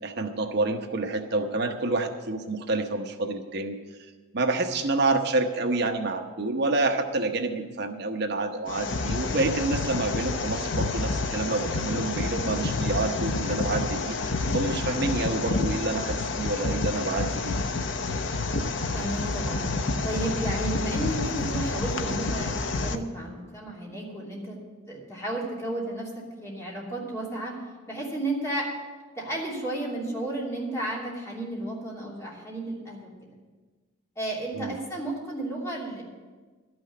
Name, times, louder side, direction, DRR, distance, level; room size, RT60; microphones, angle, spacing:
voice 1, 0.0-3.8 4.3-17.5 34.5-34.7, right 2 dB, 55° right, 5 dB, 0.9 m, -28 dB
sound 1, 8.7-23.0, left 3 dB, 60° left, 0.7 m, -29 dB
voice 2, 18.9-19.7 20.0-24.6 24.9-27.5 27.9-28.7 29.2-33.1 34.2-36.0, right 1 dB, 15° left, -5 dB, 2.9 m, -33 dB
12.5 x 6.3 x 9.4 m, 1.4 s
head